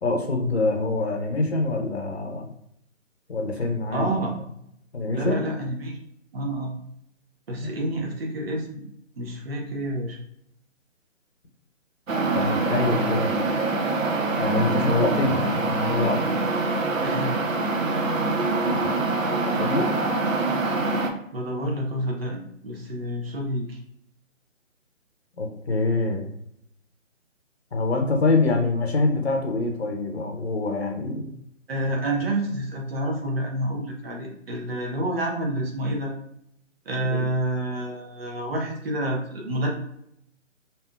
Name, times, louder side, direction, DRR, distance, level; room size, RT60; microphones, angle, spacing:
voice 1, 0.0-2.5 3.3-4.3 4.9-5.4 7.6-7.7 12.3-13.3 14.4-16.3 18.6-18.9 19.6-19.9 25.4-26.3 27.7-31.3 37.1-37.3, left 3 dB, 55° left, 3 dB, 0.7 m, -25 dB
voice 2, 3.9-4.3 5.1-6.0 6.3-6.8 7.5-8.8 9.2-10.2 17.0-17.4 21.3-23.8 31.7-36.1 36.9-39.7, right 1 dB, 50° right, 1 dB, 0.7 m, -28 dB
sound 1, 12.1-21.1, right 3 dB, 85° right, 0.6 m, -24 dB
3.4 x 2.6 x 2.2 m, 0.73 s
figure-of-eight pair, 145°, 39 cm